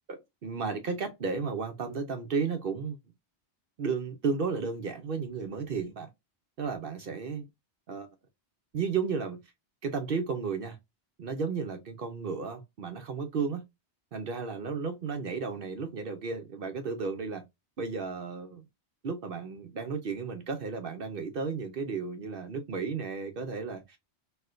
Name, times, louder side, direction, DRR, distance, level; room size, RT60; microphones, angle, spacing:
voice 1, 0.1-3.0 3.8-6.1 6.6-7.5 7.9-8.1 8.7-9.4 9.8-10.8 11.2-13.6 14.1-17.4 17.8-18.6 19.0-24.0, right 5 dB, 60° right, 0.8 m, -33 dB
4.4 x 2.1 x 2.4 m
omnidirectional pair, 1.1 m